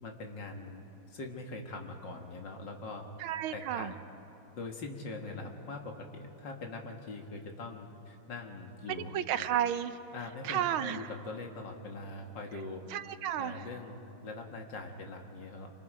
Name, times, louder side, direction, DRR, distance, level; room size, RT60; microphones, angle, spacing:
voice 1, 0.0-3.0 3.5-4.0 4.5-9.5 10.1-12.8 13.4-15.7, left 3 dB, 60° left, 2 dB, 2.4 m, -42 dB
voice 2, 3.2-3.9 9.1-10.0 10.4-11.1 12.9-13.7, right 10 dB, 90° right, 11 dB, 1.6 m, -32 dB
28.0 x 25.0 x 5.1 m, 2.9 s
omnidirectional pair, 2.3 m